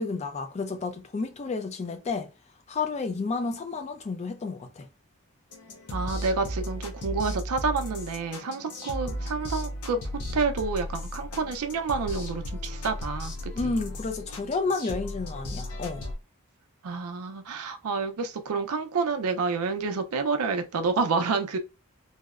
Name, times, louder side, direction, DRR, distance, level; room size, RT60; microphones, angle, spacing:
voice 1, 0.0-2.3 2.7-4.9 13.5-16.1, left 4 dB, 30° left, 0.3 m, -31 dB
sound 1, 5.5-16.1, left 1 dB, 90° left, 0.6 m, -35 dB
voice 2, 5.9-10.0 10.3-13.7 16.8-21.6, right 4 dB, 80° right, 0.4 m, -29 dB
2.7 x 2.0 x 2.3 m
head